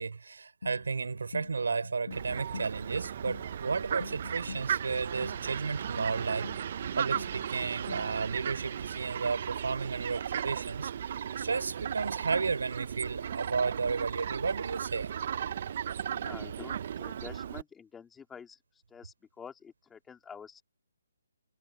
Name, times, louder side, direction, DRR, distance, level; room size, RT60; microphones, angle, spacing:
voice 1, 0.0-6.5 7.0-10.9 11.4-15.1, right 4 dB, 80° right, 4.3 m, -33 dB
sound 1, 0.6-8.3, left 4 dB, 80° left, 6.8 m, -47 dB
Fowl, 2.1-17.6, right 9 dB, 50° right, 0.8 m, -36 dB
voice 2, 16.1-18.6 18.9-20.6, left 6 dB, 10° left, 2.7 m, -48 dB
hypercardioid pair, 155°, 0 cm